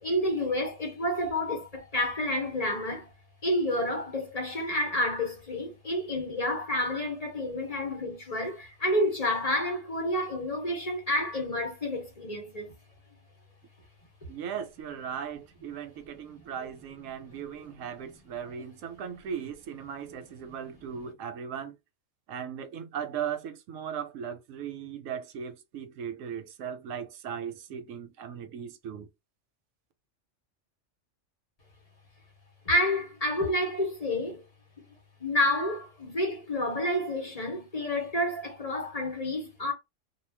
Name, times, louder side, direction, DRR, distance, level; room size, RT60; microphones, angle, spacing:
voice 1, 0.0-3.1 3.4-12.7 32.7-34.4 34.8-34.9 35.2-39.7, left 1 dB, 35° left, 0.8 m, -29 dB
voice 2, 14.3-21.8 22.3-29.1, right 8 dB, 90° right, 1.0 m, -38 dB
2.4 x 2.1 x 3.2 m
omnidirectional pair, 1.3 m